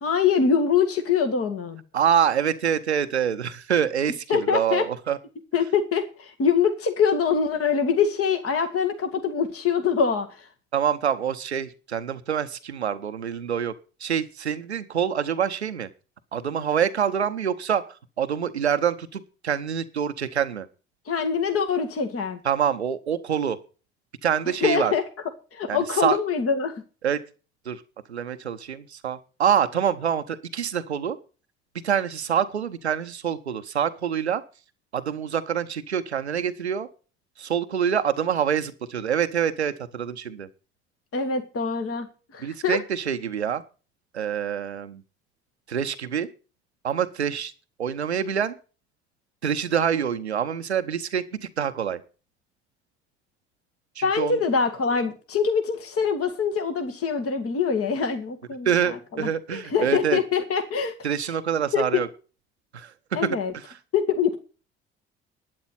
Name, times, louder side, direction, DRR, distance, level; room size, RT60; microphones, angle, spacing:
voice 1, 0.0-1.8 4.3-4.9 5.5-10.5 21.1-22.4 24.6-25.0 25.5-26.8 41.1-42.1 42.3-42.8 54.0-60.9 61.7-62.0 63.1-63.5 63.9-64.4, left 6 dB, 45° left, 5 dB, 2.1 m, -24 dB
voice 2, 1.9-5.2 10.7-13.7 14.0-15.9 16.3-20.7 22.4-23.6 24.2-24.9 25.7-26.2 27.0-27.2 27.7-27.8 28.1-31.2 31.8-34.4 34.9-36.9 37.4-40.5 42.4-43.6 44.1-45.0 45.7-46.3 46.8-47.5 47.8-48.5 49.4-52.0 54.0-54.4 58.6-60.2 61.0-62.1 62.7-62.9 63.2-63.8, right 8 dB, 90° right, 10 dB, 0.7 m, -26 dB
12.0 x 9.4 x 5.8 m, 0.35 s
figure-of-eight pair, 55°, 32 cm